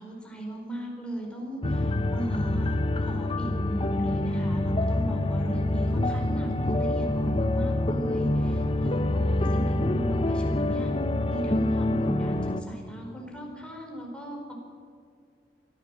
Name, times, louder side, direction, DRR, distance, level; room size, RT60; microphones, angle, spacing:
voice 1, 0.0-10.9 11.3-14.5, right 1 dB, 5° left, -1 dB, 4.5 m, -37 dB
sound 1, 1.6-12.6, left 1 dB, 30° left, 0.9 m, -26 dB
23.5 x 15.5 x 7.6 m, 2.4 s
head